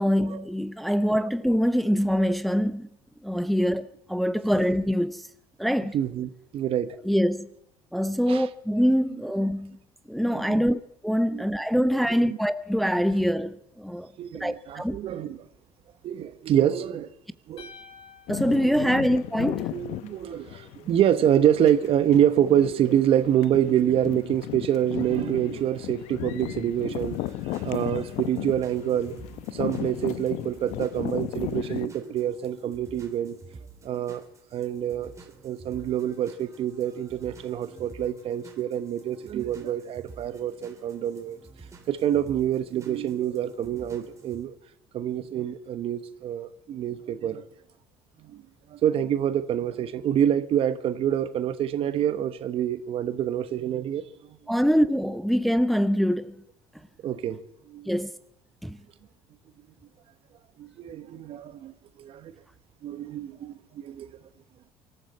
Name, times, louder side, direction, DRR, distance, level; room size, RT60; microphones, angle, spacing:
voice 1, 0.0-2.9 3.2-5.3 5.6-5.9 7.0-7.5 7.9-9.8 10.1-14.1 14.4-15.0 18.3-19.7 54.5-56.4 57.9-58.1 58.6-58.8, equal, ahead, 0.7 m, -24 dB
voice 2, 5.9-7.0 8.3-8.5 9.1-9.2 10.2-10.6 11.3-11.5 12.1-12.4 14.2-15.4 16.0-17.1 17.5-17.7 18.6-18.9 19.5-27.2 27.5-29.2 29.5-33.4 33.8-34.2 34.5-35.1 35.4-41.4 41.9-44.5 44.9-47.4 48.2-48.4 48.7-54.4 57.0-57.4 57.7-57.9 60.6-61.7 62.0-62.3 62.8-64.1, right 10 dB, 55° right, 1.1 m, -26 dB
sound 1, 17.6-19.8, left 4 dB, 55° left, 3.0 m, -50 dB
sound 2, 18.3-31.9, left 14 dB, 70° left, 0.8 m, -35 dB
sound 3, 27.0-44.4, right 4 dB, 25° right, 3.2 m, -49 dB
24.0 x 13.5 x 4.3 m
hypercardioid pair, 70°, 11 cm